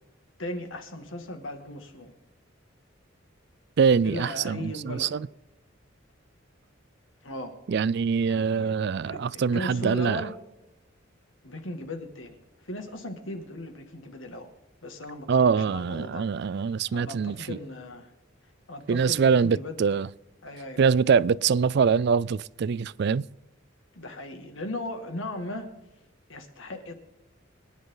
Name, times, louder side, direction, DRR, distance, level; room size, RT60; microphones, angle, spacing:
voice 1, 0.4-2.1 4.0-5.2 7.2-7.6 8.3-8.8 9.1-10.3 11.4-12.4 12.6-14.5 14.8-16.3 16.9-18.1 18.7-19.8 20.4-20.8 23.9-25.7 26.3-26.9, left 1 dB, 80° left, 2.4 m, -37 dB
voice 2, 3.8-5.3 7.7-10.2 15.3-17.6 18.9-20.1 20.8-23.2, right 6 dB, 60° right, 0.4 m, -24 dB
25.0 x 10.5 x 4.0 m
head